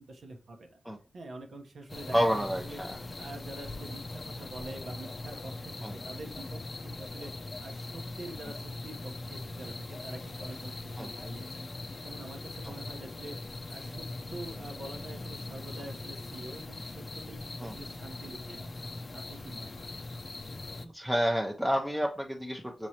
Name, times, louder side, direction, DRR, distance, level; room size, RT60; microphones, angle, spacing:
voice 1, 0.0-0.8 1.1-2.8 3.2-7.3 7.6-11.6 12.0-13.4 13.7-18.7 19.1-20.0, right 2 dB, 85° right, 3 dB, 0.9 m, -45 dB
sound 1, 1.9-20.9, left 2 dB, 45° left, 0.5 m, -41 dB
voice 2, 2.1-3.0 5.8-5.9 11.0-11.1 12.6-12.7 17.6-17.7 20.9-22.9, equal, 5° right, 1 dB, 0.6 m, -29 dB
6.1 x 3.0 x 2.8 m, 0.39 s
wide cardioid pair, 85°, 0 cm